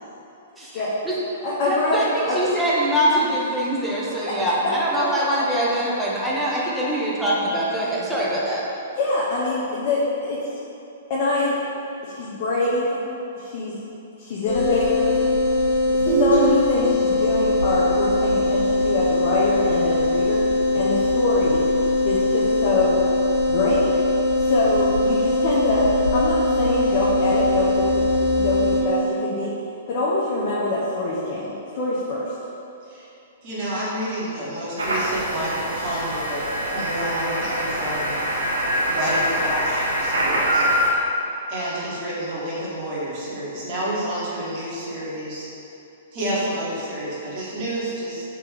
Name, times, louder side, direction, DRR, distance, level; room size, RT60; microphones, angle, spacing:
voice 1, 0.6-1.1 1.6-8.6, equal, 5° right, -6 dB, 0.9 m, -23 dB
voice 2, 1.4-2.4 9.0-10.5 11.1-11.6 12.0-13.0 13.4-13.8 14.2-15.1 15.9-20.4 20.7-21.6 22.0-23.0 23.5-23.9 24.4-28.1 28.3-29.5 29.9-32.3, left 2 dB, 45° left, -8 dB, 0.8 m, -24 dB
sound 1, 14.5-28.8, left 2 dB, 70° left, 1.2 m, -21 dB
voice 3, 33.4-38.1 38.9-40.6 41.5-45.5 46.1-48.2, right 1 dB, 40° right, -7 dB, 1.5 m, -29 dB
sound 2, 34.8-40.9, equal, 80° right, 0.7 m, -24 dB
3.6 x 2.9 x 4.8 m, 2.9 s
figure-of-eight pair, 115°, 0 cm